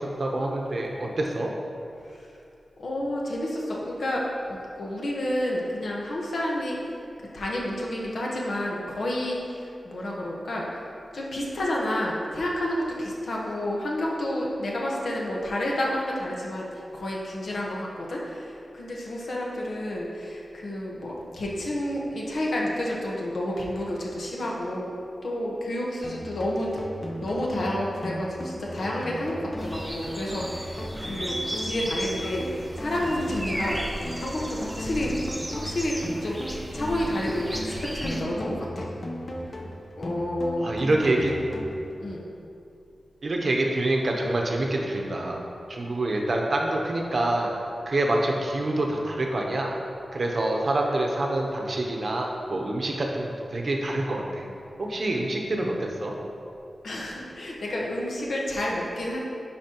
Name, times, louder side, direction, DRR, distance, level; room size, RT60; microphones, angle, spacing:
voice 1, 0.0-1.5 40.6-41.3 43.2-45.4 45.7-47.5 47.9-49.7 50.1-54.5 54.8-56.2, right 2 dB, 55° right, 0 dB, 0.9 m, -26 dB
voice 2, 2.8-6.8 7.3-10.7 11.1-25.0 25.2-26.7 27.2-35.2 35.5-36.4 36.7-38.9 40.0-40.7 42.0-42.2 56.8-59.2, left 1 dB, 75° left, -3 dB, 1.2 m, -30 dB
sound 1, 26.0-42.0, equal, 40° left, 0.7 m, -37 dB
sound 2, 29.6-38.2, equal, 10° right, 0.7 m, -35 dB
11.0 x 4.3 x 3.0 m, 2.6 s
wide cardioid pair, 110°, 0 cm